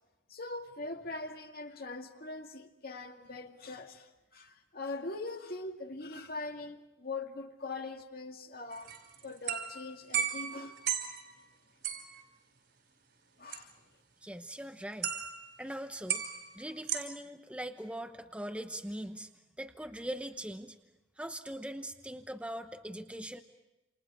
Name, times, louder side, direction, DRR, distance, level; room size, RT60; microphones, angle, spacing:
voice 1, 0.3-8.9 9.2-10.8 13.4-13.7, left 3 dB, 55° left, 2.1 m, -42 dB
sound 1, 8.7-11.3 11.8-12.2 13.5-13.6 15.0-15.6 16.1-17.0, right 8 dB, 60° right, 4.6 m, -35 dB
voice 2, 14.2-15.1 15.6-16.3 16.5-19.3 19.6-20.8 21.2-23.4, right 1 dB, 5° right, 1.0 m, -41 dB
29.0 x 28.0 x 4.9 m
head